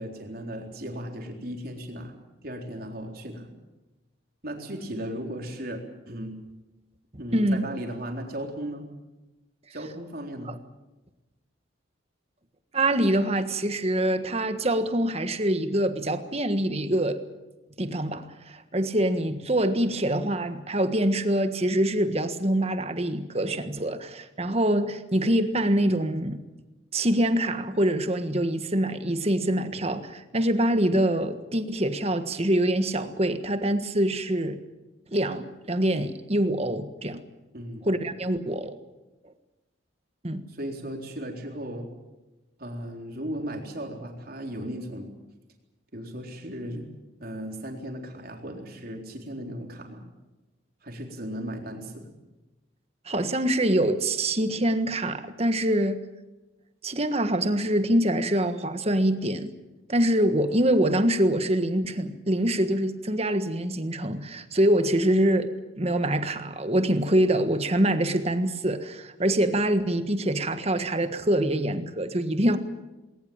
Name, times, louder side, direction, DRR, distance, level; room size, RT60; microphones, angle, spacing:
voice 1, 0.0-2.1 2.4-3.5 4.4-6.4 7.2-8.8 9.7-10.5 37.5-37.9 40.5-41.9 42.6-45.1 45.9-46.9 47.2-50.0 50.8-52.1, equal, 50° right, 2 dB, 3.9 m, -36 dB
voice 2, 7.3-7.6 10.5-10.6 12.7-17.2 17.8-26.4 26.9-34.6 35.1-37.2 37.8-38.7 40.2-40.4 53.0-56.0 56.8-59.5 59.9-65.5 65.8-72.6, right 1 dB, 30° right, 9 dB, 1.5 m, -25 dB
20.0 x 19.0 x 8.9 m, 1.1 s
head